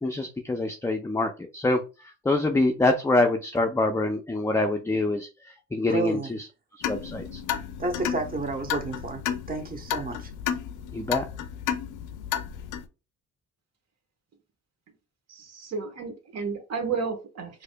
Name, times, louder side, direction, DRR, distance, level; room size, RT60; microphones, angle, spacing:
voice 1, 0.0-6.4 6.9-7.4 10.9-11.2, left 2 dB, 10° left, 0.4 m, -25 dB
voice 2, 5.9-6.3 7.8-10.3, right 2 dB, 30° right, 0.9 m, -31 dB
sound 1, 6.8-12.8, left 9 dB, 85° left, 0.5 m, -32 dB
voice 3, 15.3-17.6, right 5 dB, 60° right, 1.1 m, -32 dB
4.7 x 2.5 x 2.2 m
cardioid pair, 90°, 30 cm